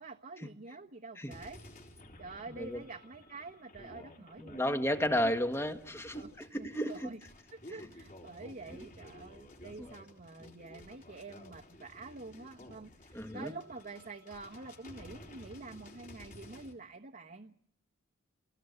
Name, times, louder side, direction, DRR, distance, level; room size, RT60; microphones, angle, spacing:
voice 1, 0.0-1.6 2.2-5.3 6.1-7.2 7.5-17.5, right 3 dB, 45° right, 1.3 m, -47 dB
sound 1, 1.3-16.7, left 1 dB, 40° left, 3.8 m, -54 dB
voice 2, 4.4-7.1 8.7-8.8 9.8-9.9 13.1-13.5, equal, 15° left, 1.5 m, -33 dB
28.5 x 19.0 x 8.1 m
head